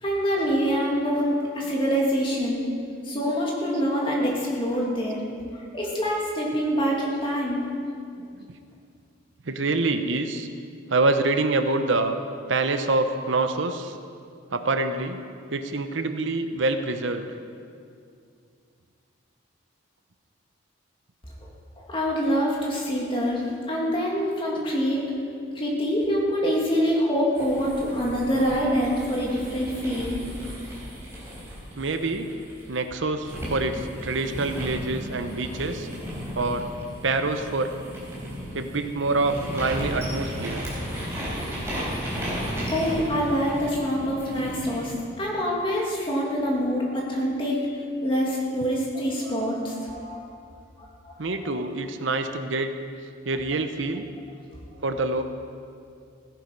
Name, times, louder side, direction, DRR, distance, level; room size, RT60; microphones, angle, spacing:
voice 1, 0.0-2.7 3.0-5.2 5.5-7.7 21.4-21.5 21.8-25.1 25.5-30.2 42.7-47.6 48.0-50.2 50.8-51.1, equal, 25° left, -3 dB, 2.5 m, -25 dB
voice 2, 9.5-10.5 10.9-12.2 12.5-13.9 14.5-15.2 15.5-17.3 31.8-32.4 32.7-35.9 36.3-36.7 37.0-37.7 38.5-40.6 51.2-52.7 53.3-54.1 54.8-55.2, right 3 dB, 70° right, 8 dB, 0.8 m, -26 dB
sound 1, 27.4-32.8 33.2-44.9, equal, 15° right, 4.2 m, -34 dB
16.5 x 11.0 x 5.3 m, 2.4 s
head